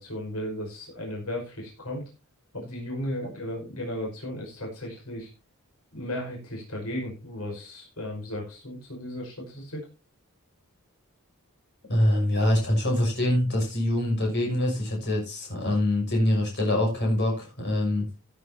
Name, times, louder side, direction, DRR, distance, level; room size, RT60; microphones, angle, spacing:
voice 1, 0.0-2.0 2.5-5.3 5.9-9.8, left 1 dB, 80° left, -1 dB, 5.4 m, -35 dB
voice 2, 11.9-18.1, left 1 dB, 50° left, 1 dB, 6.3 m, -24 dB
17.0 x 9.4 x 2.8 m, 0.29 s
head